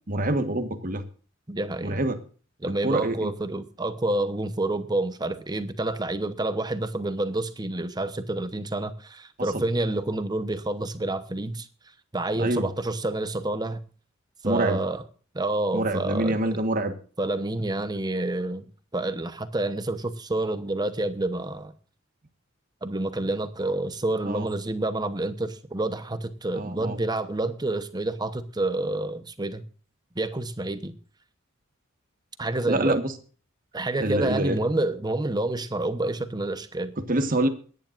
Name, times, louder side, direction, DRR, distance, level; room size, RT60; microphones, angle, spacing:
voice 1, 0.1-1.0 1.8-2.2 2.8-3.3 9.4-9.6 12.4-12.7 14.4-14.8 15.7-16.9 24.2-24.5 26.5-27.0 32.7-33.1 34.0-34.6 37.0-37.5, right 1 dB, 45° right, 1.4 m, -26 dB
voice 2, 1.5-2.0 2.6-11.7 12.1-13.8 14.4-15.0 15.3-16.4 17.2-18.6 18.9-21.7 22.8-29.6 30.1-30.9 32.4-33.0 33.7-36.9, right 2 dB, 20° right, 0.9 m, -28 dB
24.0 x 10.5 x 2.6 m
head